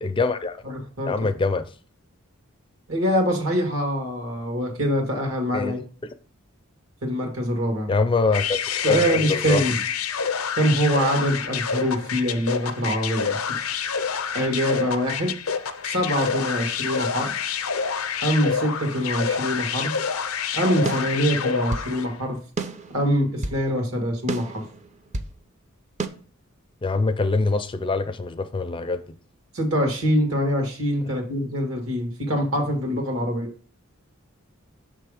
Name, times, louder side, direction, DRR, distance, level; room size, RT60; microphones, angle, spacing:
voice 1, 0.0-0.6 1.0-1.6 5.5-5.7 7.9-8.6 8.9-9.6 26.8-29.0, left 3 dB, 25° left, 0.4 m, -24 dB
voice 2, 0.6-1.1 2.9-5.8 7.0-7.9 8.8-9.8 10.6-13.4 14.3-15.3 15.8-17.3 18.2-19.9 20.5-22.4 22.9-24.6 29.5-33.5, equal, 75° right, 1.9 m, -24 dB
sound 1, 8.3-22.2, left 6 dB, 80° left, 0.5 m, -28 dB
sound 2, 20.9-21.9 22.6-23.6 24.3-25.4 26.0-26.1, right 3 dB, 35° right, 0.5 m, -31 dB
6.3 x 3.4 x 4.8 m
head